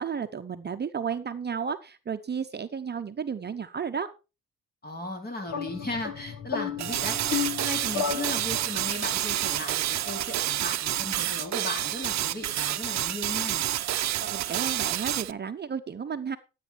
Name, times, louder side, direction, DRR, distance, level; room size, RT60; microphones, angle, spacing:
voice 1, 0.0-4.1 14.2-16.4, right 6 dB, 35° right, 8 dB, 0.8 m, -33 dB
voice 2, 4.8-13.6, left 1 dB, 30° left, 4 dB, 4.2 m, -36 dB
sound 1, 5.5-9.0, left 7 dB, 75° left, 1.4 m, -33 dB
sound 2, 6.8-15.3, right 13 dB, 65° right, 0.7 m, -29 dB
12.0 x 8.4 x 4.5 m, 0.31 s
cardioid pair, 90°, 30 cm